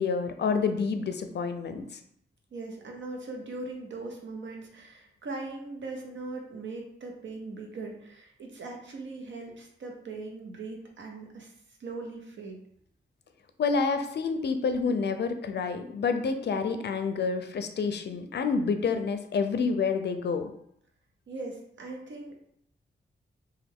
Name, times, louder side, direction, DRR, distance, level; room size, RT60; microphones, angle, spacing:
voice 1, 0.0-2.0 13.6-20.5, left 5 dB, 60° left, 7 dB, 0.4 m, -28 dB
voice 2, 2.5-11.5 11.8-12.6 21.3-22.3, right 3 dB, 75° right, 1 dB, 0.7 m, -40 dB
3.2 x 2.2 x 3.5 m, 0.69 s
cardioid pair, 80°, 20 cm